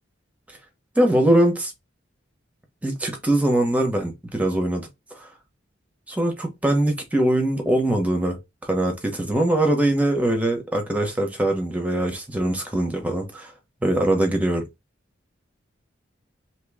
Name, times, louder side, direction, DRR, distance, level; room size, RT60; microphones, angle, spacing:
voice 1, 1.0-1.7 2.8-4.8 5.1-5.3 6.1-8.4 8.7-13.5 13.8-14.6, right 1 dB, 10° right, 0.9 m, -22 dB
2.9 x 2.8 x 3.5 m
head